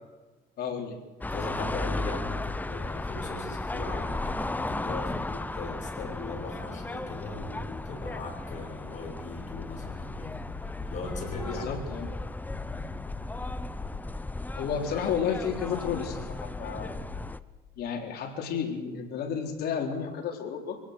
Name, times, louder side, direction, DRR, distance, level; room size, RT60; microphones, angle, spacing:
voice 1, 0.6-1.0 11.4-12.1 14.5-16.9 17.7-20.8, left 7 dB, 70° left, 2 dB, 4.0 m, -32 dB
sound 1, 1.2-17.4, left 2 dB, 10° left, 0.7 m, -35 dB
voice 2, 1.3-10.4 10.9-11.7, left 3 dB, 45° left, 1 dB, 6.8 m, -39 dB
sound 2, 9.5-11.8 12.5-14.8 15.8-18.1, left 6 dB, 85° left, 2.2 m, -46 dB
25.0 x 17.5 x 6.6 m, 1.3 s
cardioid pair, 110°, 17 cm